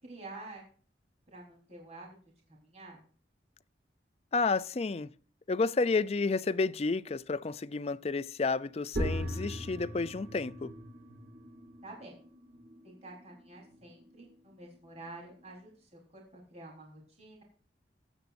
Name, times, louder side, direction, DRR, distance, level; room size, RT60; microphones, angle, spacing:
voice 1, 0.0-0.6 1.3-2.1 2.5-3.0 11.8-12.2 12.8-17.4, right 2 dB, 35° right, 4.1 m, -49 dB
voice 2, 4.3-5.1 5.5-10.7, left 3 dB, 35° left, 0.4 m, -31 dB
sound 1, 8.9-15.7, equal, 80° right, 6.9 m, -41 dB
16.0 x 11.5 x 2.6 m
head